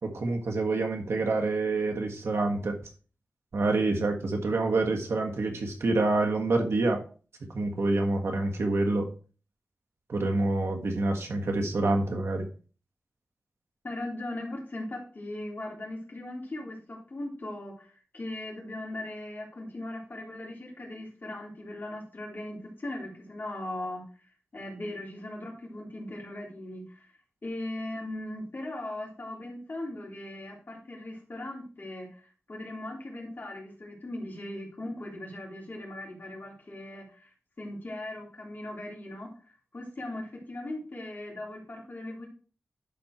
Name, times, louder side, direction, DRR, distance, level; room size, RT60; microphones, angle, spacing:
voice 1, 0.0-2.8 3.5-7.0 7.5-9.1 10.1-12.5, right 2 dB, 80° right, 3 dB, 1.6 m, -27 dB
voice 2, 13.8-27.1 27.4-39.3 39.7-42.3, left 1 dB, 45° left, -2 dB, 3.4 m, -39 dB
11.0 x 4.3 x 4.5 m, 0.39 s
wide cardioid pair, 70°, 4 cm